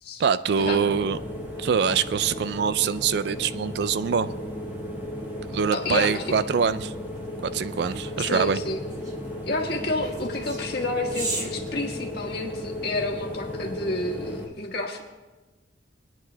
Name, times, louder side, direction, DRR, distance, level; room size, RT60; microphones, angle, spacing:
voice 1, 0.2-1.2 1.6-4.3 5.5-6.9 7.4-8.6, right 6 dB, 60° right, 14 dB, 0.3 m, -24 dB
sound 1, 0.6-14.5, left 1 dB, 10° right, 1.3 m, -35 dB
voice 2, 5.7-6.4 8.2-8.8 9.4-15.0, left 2 dB, 55° left, 0 dB, 1.4 m, -30 dB
sound 2, 5.8-12.6, right 3 dB, 40° right, 1.5 m, -39 dB
25.0 x 9.6 x 2.2 m, 1.2 s
head